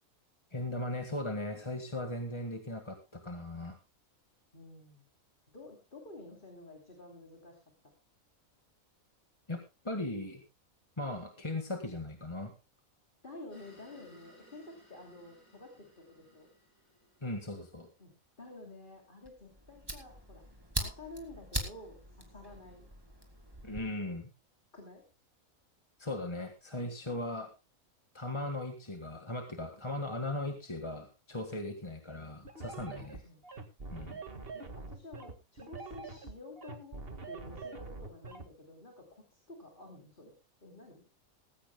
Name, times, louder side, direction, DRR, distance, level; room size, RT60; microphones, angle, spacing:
voice 1, 0.5-3.8 9.5-10.4 11.0-12.5 17.2-17.9 23.6-24.3 26.0-27.5 28.1-33.2 33.9-34.2, left 1 dB, 20° left, 4 dB, 1.6 m, -38 dB
voice 2, 4.5-5.0 5.5-7.9 13.2-16.5 18.0-18.1 18.4-20.4 20.8-22.9 24.7-25.0 33.2-33.4 34.5-40.3 40.6-41.1, left 2 dB, 35° left, 2 dB, 3.2 m, -50 dB
sound 1, 13.5-18.1, equal, 80° left, 7.7 m, -61 dB
Fire, 19.2-23.8, right 1 dB, 15° right, 2.7 m, -41 dB
sound 2, 32.4-38.5, right 3 dB, 40° right, 2.0 m, -44 dB
19.0 x 16.5 x 2.2 m, 0.28 s
omnidirectional pair, 1.5 m